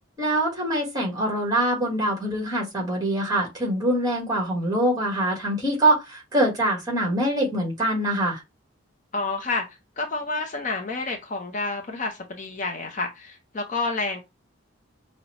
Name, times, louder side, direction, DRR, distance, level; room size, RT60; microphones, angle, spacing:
voice 1, 0.2-8.4, right 1 dB, 20° right, 1.5 m, -24 dB
voice 2, 9.1-9.7 10.0-14.2, left 3 dB, 40° left, 0.5 m, -29 dB
5.4 x 2.0 x 2.8 m
head